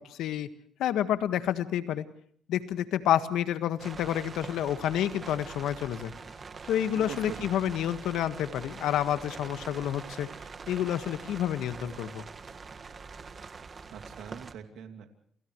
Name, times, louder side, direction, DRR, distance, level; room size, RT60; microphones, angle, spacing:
voice 1, 0.1-0.5 0.8-2.0 2.5-6.1 6.7-10.3 10.7-12.2, left 11 dB, 85° left, 10 dB, 1.6 m, -29 dB
sound 1, 3.8-14.5, right 4 dB, 40° right, 1.7 m, -44 dB
voice 2, 7.0-7.5 13.9-15.1, right 8 dB, 80° right, 5 dB, 2.9 m, -43 dB
29.0 x 29.0 x 3.2 m, 0.63 s
cardioid pair, 90°, 0 cm